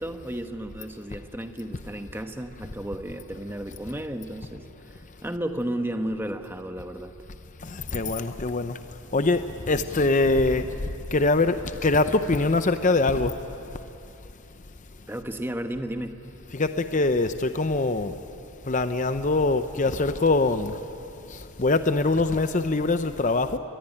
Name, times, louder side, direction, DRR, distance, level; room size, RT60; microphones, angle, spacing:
voice 1, 0.0-7.1 15.1-16.2, right 1 dB, 10° right, 1.1 m, -33 dB
voice 2, 7.6-8.8 9.1-9.4 9.7-10.7 11.1-11.6 11.8-13.3 16.5-18.1 18.7-20.7 21.3-23.6, left 3 dB, 35° left, 0.7 m, -23 dB
25.0 x 20.5 x 10.0 m
head